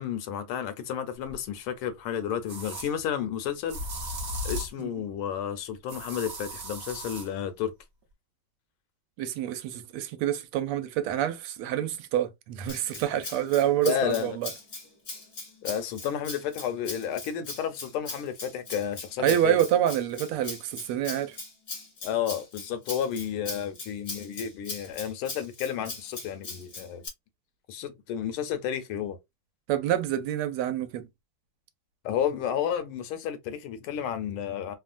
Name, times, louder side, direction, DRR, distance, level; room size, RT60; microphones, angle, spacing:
voice 1, 0.0-3.8 4.4-7.7 13.8-14.4 15.6-19.6 22.0-27.0 27.7-29.2 32.0-34.7, left 9 dB, 80° left, 1.5 m, -31 dB
sound 1, 1.3-1.4 2.5-2.9 3.7-4.8 5.9-7.3, equal, 55° right, 0.7 m, -36 dB
voice 2, 9.2-14.5 19.2-21.4 29.7-31.1, right 11 dB, 85° right, 1.5 m, -27 dB
Rattle (instrument), 12.7-27.1, left 3 dB, 50° left, 0.7 m, -40 dB
3.6 x 2.1 x 2.4 m
omnidirectional pair, 2.3 m